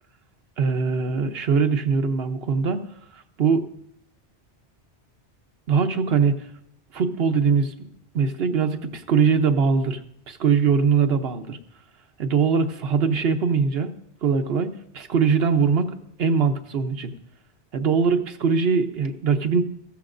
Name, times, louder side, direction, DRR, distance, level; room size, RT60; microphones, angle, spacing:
voice 1, 0.6-2.8 3.4-3.7 5.7-6.4 6.9-7.9 8.1-10.0 10.3-11.6 12.2-14.0 14.2-17.1 17.7-19.6, right 5 dB, 65° right, 7 dB, 1.0 m, -22 dB
15.0 x 13.0 x 2.5 m, 0.71 s
omnidirectional pair, 1.2 m